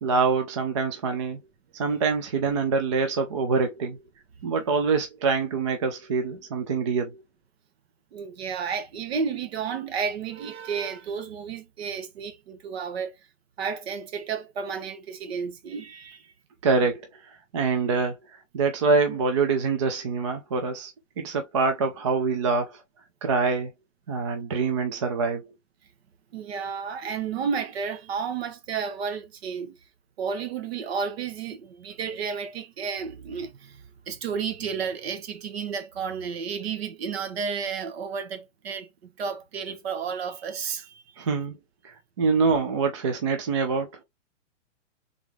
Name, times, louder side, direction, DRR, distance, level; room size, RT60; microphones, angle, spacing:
voice 1, 0.0-1.4 1.7-4.0 4.4-7.1 16.6-17.1 17.5-18.1 18.5-20.9 21.2-22.8 23.2-23.7 24.1-25.5 41.2-41.6 41.8-43.9, right 4 dB, 25° right, 0.4 m, -25 dB
voice 2, 8.1-13.1 13.6-16.3 26.3-29.8 30.2-41.2, right 6 dB, 55° right, 1.1 m, -32 dB
3.7 x 3.5 x 3.0 m
hypercardioid pair, 155°, 38 cm